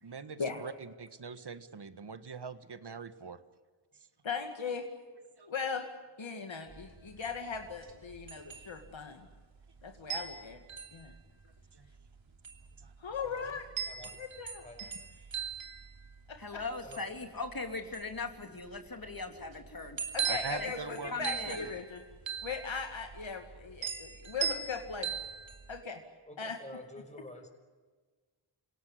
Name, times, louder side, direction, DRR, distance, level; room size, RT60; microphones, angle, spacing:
voice 1, 0.0-3.4 4.0-4.1 5.4-5.5 11.4-11.9 12.8-12.9 20.2-21.6, right 5 dB, 55° right, 11 dB, 1.6 m, -43 dB
voice 2, 4.2-4.9 5.5-5.8 6.2-9.3 9.8-10.6 10.9-11.1 13.0-13.6 14.2-14.6 16.3-16.6 20.1-22.0 22.4-25.1 25.7-26.0 26.4-26.6, left 5 dB, 70° left, 4 dB, 2.2 m, -38 dB
sound 1, 6.7-25.8, right 7 dB, 70° right, 2.9 m, -41 dB
voice 3, 13.2-13.6 13.9-14.2 14.6-14.8 16.8-17.2 20.9-21.0 26.3-27.5, left 1 dB, 15° left, 4 dB, 5.4 m, -49 dB
voice 4, 16.4-20.0 20.6-21.6, left 3 dB, 45° left, 5 dB, 3.0 m, -40 dB
27.5 x 17.5 x 9.8 m, 1.4 s
cardioid pair, 50°, 48 cm